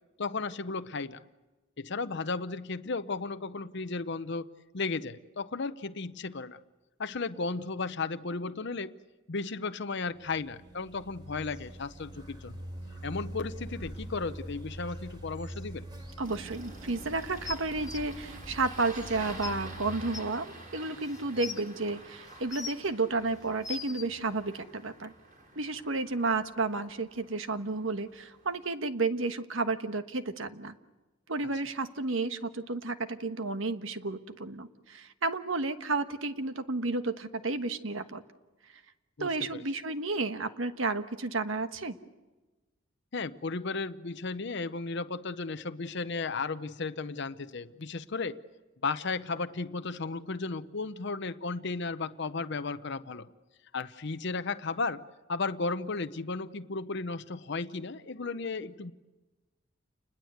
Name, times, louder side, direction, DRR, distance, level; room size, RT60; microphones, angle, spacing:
voice 1, 0.2-1.2 1.8-6.6 7.0-8.9 9.3-12.6 13.0-15.9 39.2-39.6 43.1-48.4 48.8-53.3 53.7-55.0 55.3-58.9, left 4 dB, 55° left, 11 dB, 0.8 m, -34 dB
sound 1, 10.2-19.9, right 1 dB, 20° right, 4.3 m, -44 dB
Engine starting, 16.2-28.7, right 2 dB, 40° right, 5.0 m, -49 dB
voice 2, 16.2-25.1 25.6-30.7 31.3-38.2 39.2-42.0, right 3 dB, 70° right, 9 dB, 1.3 m, -32 dB
sound 2, 17.4-18.0 19.0-19.1 19.4-19.5 20.1-20.2 21.0-21.6 22.3-22.9 23.4-24.0 25.0-25.1, left 5 dB, 15° left, 0.9 m, -39 dB
29.0 x 21.0 x 8.0 m, 1.2 s
head